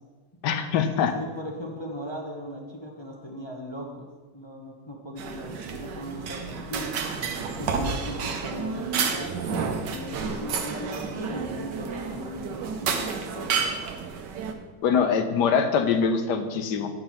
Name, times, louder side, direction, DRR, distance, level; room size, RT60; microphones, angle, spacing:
voice 1, 0.4-1.1 14.8-16.9, left 6 dB, 75° left, 7 dB, 1.3 m, -23 dB
voice 2, 1.1-7.0 7.6-12.6 12.8-12.9 13.2-13.5, equal, 25° left, -1 dB, 0.6 m, -38 dB
sound 1, 5.2-14.5, right 5 dB, 75° right, 1.4 m, -30 dB
8.9 x 5.4 x 5.5 m, 1.4 s
omnidirectional pair, 1.9 m